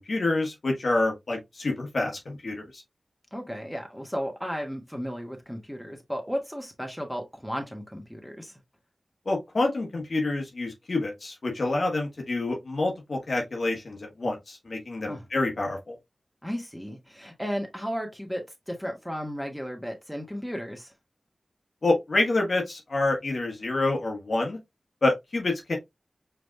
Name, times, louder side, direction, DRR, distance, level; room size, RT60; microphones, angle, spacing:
voice 1, 0.1-2.6 9.3-16.0 21.8-24.6 25.0-25.8, left 2 dB, 70° left, 1.2 m, -27 dB
voice 2, 3.3-8.6 15.1-15.2 16.4-20.9, equal, ahead, 1.5 m, -34 dB
4.9 x 3.3 x 2.2 m
cardioid pair, 45°, 0 cm